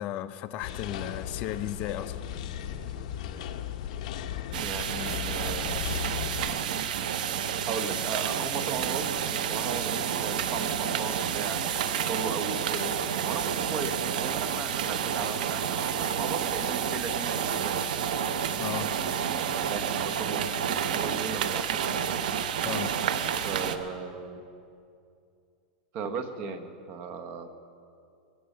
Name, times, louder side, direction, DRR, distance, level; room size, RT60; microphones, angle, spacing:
voice 1, 0.0-2.2 18.6-18.9 22.6-22.9, left 12 dB, 30° left, 9 dB, 0.4 m, -35 dB
sound 1, 0.6-6.6, left 9 dB, 55° left, 0.9 m, -36 dB
sound 2, 4.5-23.8, right 8 dB, 70° right, 0.8 m, -30 dB
voice 2, 4.6-5.7 7.7-12.9 13.2-17.8 19.7-22.1 23.4-24.4 25.9-27.5, right 5 dB, 35° right, 9 dB, 1.0 m, -36 dB
22.0 x 7.8 x 6.7 m, 2.5 s
supercardioid pair, 160°, 5 cm